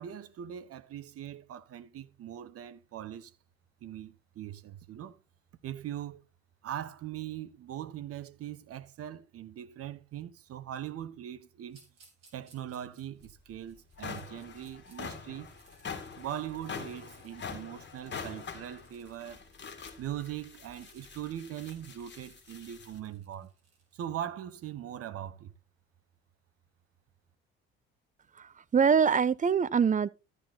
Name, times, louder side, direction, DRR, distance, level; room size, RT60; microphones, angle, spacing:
voice 1, 0.0-3.3 3.8-5.2 5.6-6.2 6.6-11.8 12.3-15.5 16.2-19.4 20.0-23.5 23.9-25.5, right 11 dB, 55° right, 1.1 m, -41 dB
sound 1, 11.7-15.0 15.3-24.0, right 4 dB, 75° right, 4.2 m, -65 dB
sound 2, 13.2-13.3 13.8-23.0, left 5 dB, 40° left, 2.2 m, -44 dB
voice 2, 28.4-30.1, right 6 dB, 25° right, 0.6 m, -24 dB
12.5 x 8.2 x 4.2 m
hypercardioid pair, 55°, 29 cm